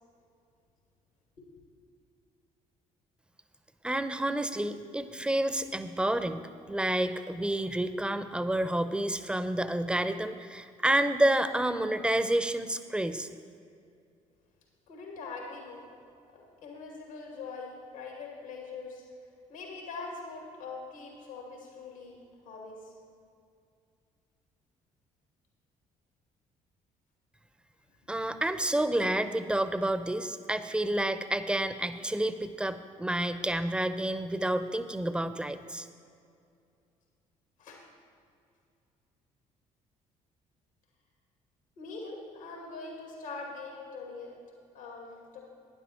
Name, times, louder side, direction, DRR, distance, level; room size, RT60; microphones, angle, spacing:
voice 1, 3.8-13.3 28.1-35.9, right 1 dB, 5° right, 11 dB, 0.7 m, -29 dB
voice 2, 14.9-15.8 16.3-19.0 19.5-22.2 22.4-22.9 37.6-37.8 41.8-44.3 44.7-45.4, left 4 dB, 85° left, 0 dB, 2.3 m, -42 dB
11.5 x 9.9 x 4.4 m, 2.4 s
hypercardioid pair, 50°, 17 cm